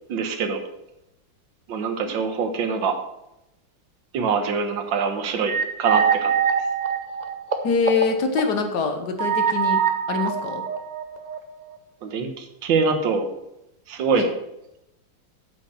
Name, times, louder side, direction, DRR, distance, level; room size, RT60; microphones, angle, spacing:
voice 1, 0.1-0.6 1.7-3.0 4.1-6.3 12.0-13.3 13.9-14.3, right 5 dB, 70° right, 6 dB, 1.8 m, -24 dB
sound 1, 5.5-8.0 8.4-8.5 9.2-11.4, right 7 dB, 85° right, 0.3 m, -23 dB
voice 2, 7.6-9.8 10.1-10.6 14.1-14.3, left 4 dB, 60° left, 6 dB, 1.6 m, -24 dB
8.3 x 5.9 x 6.3 m, 0.86 s
omnidirectional pair, 2.2 m